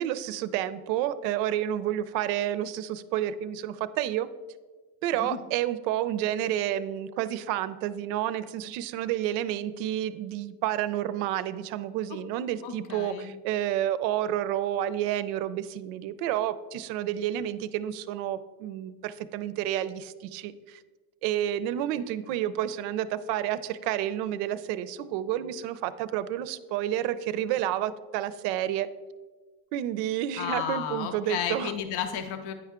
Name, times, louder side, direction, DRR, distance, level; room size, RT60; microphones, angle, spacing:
voice 1, 0.0-4.3 5.0-20.8 21.2-28.9 29.7-31.7, right 11 dB, 80° right, 14 dB, 0.6 m, -30 dB
voice 2, 12.6-13.3 30.4-32.5, left 8 dB, 50° left, 7 dB, 0.6 m, -33 dB
9.4 x 4.6 x 3.6 m, 1.3 s
supercardioid pair, 125°, 50 cm